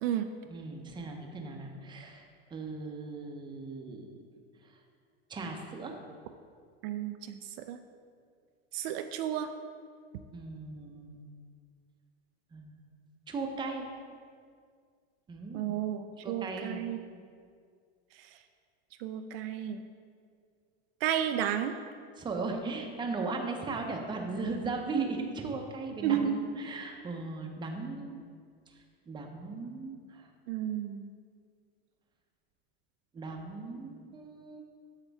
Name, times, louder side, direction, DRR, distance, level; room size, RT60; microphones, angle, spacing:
voice 1, 0.5-4.3 5.3-5.9 10.3-11.3 12.5-12.8 13.3-13.9 15.3-15.8 16.2-16.8 22.2-28.2 29.1-30.3 33.1-34.6, right 3 dB, 15° right, 2 dB, 0.7 m, -37 dB
voice 2, 6.8-7.4 7.7-7.8 8.7-9.5 15.5-17.0 19.0-19.8 21.0-21.7 26.0-26.4 30.5-31.1, right 10 dB, 65° right, 8 dB, 0.4 m, -32 dB
8.1 x 5.8 x 3.4 m, 2.1 s
supercardioid pair, 130°, 32 cm